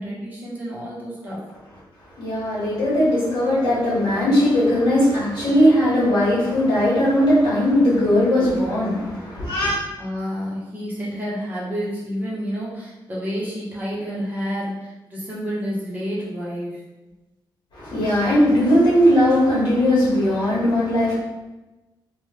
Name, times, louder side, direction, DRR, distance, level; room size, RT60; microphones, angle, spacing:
voice 1, 0.0-1.4 10.0-16.8, equal, 20° right, -7 dB, 0.9 m, -29 dB
voice 2, 2.2-9.8 17.7-21.1, equal, 55° left, -8 dB, 1.1 m, -18 dB
2.9 x 2.2 x 3.3 m, 1.1 s
wide cardioid pair, 160°, 8 cm